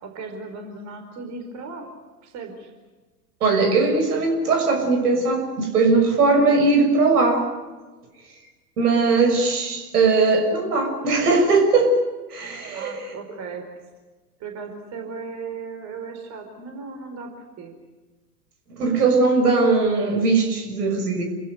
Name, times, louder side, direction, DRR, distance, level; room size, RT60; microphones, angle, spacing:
voice 1, 0.0-1.9 2.2-2.7 12.7-13.6 14.4-17.3 17.6-17.7, right 4 dB, 35° right, 4 dB, 4.5 m, -36 dB
voice 2, 3.4-7.5 8.8-11.9 12.3-13.1 18.8-21.2, right 3 dB, 70° right, 4 dB, 6.4 m, -19 dB
27.5 x 16.0 x 9.4 m, 1.3 s
hypercardioid pair, 100°, 48 cm